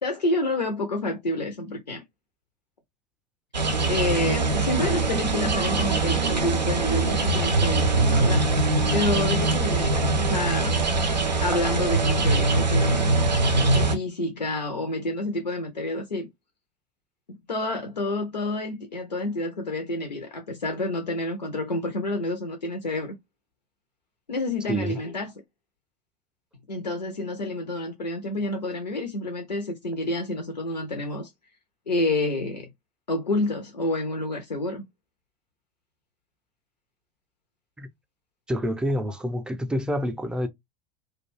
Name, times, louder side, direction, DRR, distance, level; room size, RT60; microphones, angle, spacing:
voice 1, 0.0-2.0 3.9-8.5 8.9-11.1 11.4-13.1 13.4-16.3 17.3-23.2 24.3-25.3 26.7-31.3 31.9-32.7 33.1-34.8, left 2 dB, 90° left, 0.4 m, -29 dB
sound 1, 3.5-14.0, right 3 dB, 90° right, 0.4 m, -22 dB
voice 2, 24.7-25.0 37.8-37.9 38.5-40.5, equal, 5° right, 0.4 m, -27 dB
2.4 x 2.1 x 3.0 m
figure-of-eight pair, 75°, 21 cm